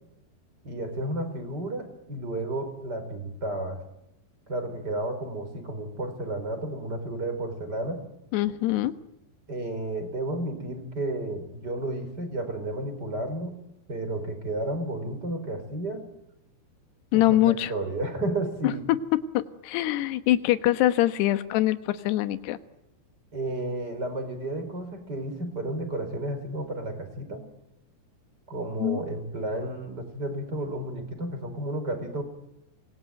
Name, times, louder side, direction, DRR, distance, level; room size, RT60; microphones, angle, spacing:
voice 1, 0.6-3.8 4.5-8.0 9.5-13.6 13.9-16.0 17.1-18.8 23.3-27.4 28.5-32.2, right 1 dB, 25° right, 8 dB, 4.9 m, -32 dB
voice 2, 8.3-8.9 17.1-17.7 18.6-22.6 28.8-29.0, left 14 dB, 75° left, 11 dB, 3.2 m, -24 dB
27.5 x 22.0 x 9.3 m, 0.86 s
omnidirectional pair, 5.1 m